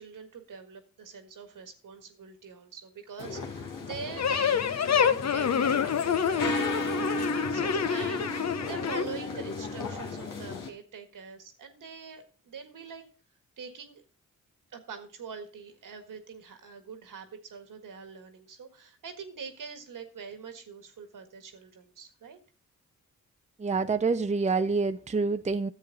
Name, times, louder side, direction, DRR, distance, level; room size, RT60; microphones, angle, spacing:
voice 1, 0.0-13.0 13.6-14.0 14.7-22.4, right 6 dB, 75° right, 7 dB, 1.7 m, -44 dB
sound 1, 3.2-10.7, left 3 dB, 75° left, 1.8 m, -34 dB
sound 2, 4.2-9.0, left 7 dB, 55° left, 0.8 m, -27 dB
voice 2, 23.6-25.7, right 4 dB, 20° right, 10 dB, 0.6 m, -27 dB
10.5 x 7.6 x 3.9 m, 0.37 s
cardioid pair, 50°, 33 cm